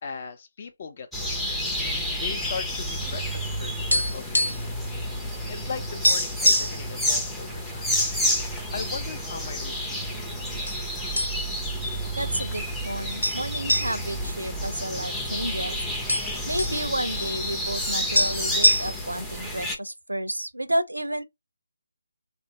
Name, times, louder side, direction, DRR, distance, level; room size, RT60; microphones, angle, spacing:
voice 1, 0.0-1.7 2.2-4.9 5.5-7.9 8.7-11.2, left 5 dB, 35° left, 0.7 m, -39 dB
sound 1, 1.1-19.8, equal, ahead, 0.6 m, -30 dB
sound 2, 3.9-4.8 5.0-5.2 5.6-5.7 6.0-6.8 7.5-8.1 8.5-8.6 9.3-10.0 10.7-10.8 11.2-11.7 12.0-12.1 13.2-15.3 15.6-15.7 15.9-16.8 17.8-17.9 18.1-19.2, left 1 dB, 85° left, 1.3 m, -24 dB
voice 2, 12.2-15.8 16.4-21.2, right 1 dB, 80° right, 0.6 m, -31 dB
3.3 x 2.5 x 2.9 m
figure-of-eight pair, 150°, 0 cm